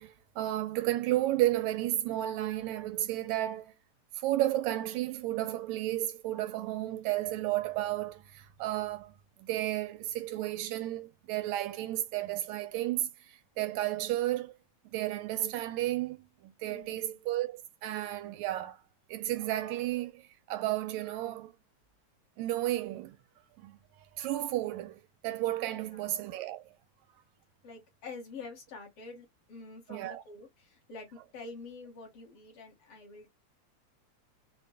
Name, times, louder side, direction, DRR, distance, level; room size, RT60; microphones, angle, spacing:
voice 1, 0.0-3.7 4.2-14.5 14.9-18.8 19.1-21.5 22.4-23.2 23.6-26.7 29.9-30.2, right 15 dB, 80° right, 1.8 m, -33 dB
voice 2, 16.7-17.1 25.8-26.1 27.6-33.3, left 4 dB, 55° left, 2.2 m, -47 dB
5.2 x 2.5 x 2.2 m
omnidirectional pair, 3.4 m